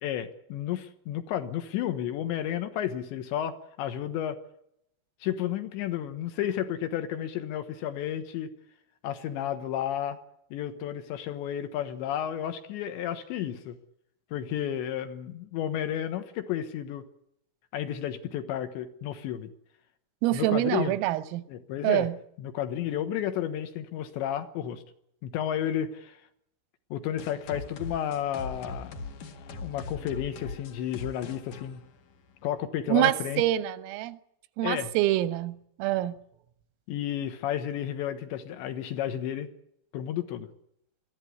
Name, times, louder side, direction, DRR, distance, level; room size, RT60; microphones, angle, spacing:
voice 1, 0.0-4.4 5.2-8.5 9.0-10.2 10.5-13.8 14.3-17.1 17.7-19.5 20.3-20.9 21.5-22.1 22.4-24.8 25.2-26.2 26.9-29.0 29.6-31.8 32.4-33.4 34.6-34.9 36.9-39.5 39.9-40.5, left 10 dB, 70° left, 3.3 m, -32 dB
voice 2, 20.2-21.4 21.8-22.1 32.9-34.2 34.6-36.1, right 15 dB, 85° right, 3.7 m, -26 dB
sound 1, 27.2-32.6, left 3 dB, 55° left, 2.5 m, -41 dB
22.0 x 15.0 x 9.7 m
omnidirectional pair, 5.8 m